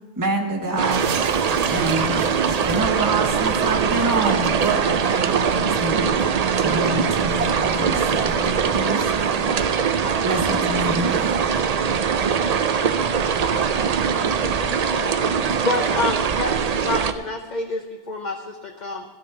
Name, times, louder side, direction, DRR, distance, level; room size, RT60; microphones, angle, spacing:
voice 1, 0.2-1.1 1.7-6.1 6.6-9.5 10.2-11.5, right 2 dB, 15° right, 2 dB, 1.1 m, -27 dB
sound 1, 0.8-17.1, right 6 dB, 50° right, 0.4 m, -22 dB
sound 2, 0.9-9.0, right 7 dB, 90° right, 1.1 m, -33 dB
voice 2, 12.7-13.6 14.1-15.7 16.3-16.7, left 2 dB, 75° left, 0 dB, 1.9 m, -39 dB
voice 3, 15.6-16.5 16.8-19.0, left 3 dB, 40° left, 2 dB, 0.9 m, -27 dB
14.0 x 5.3 x 8.9 m, 1.3 s
omnidirectional pair, 1.2 m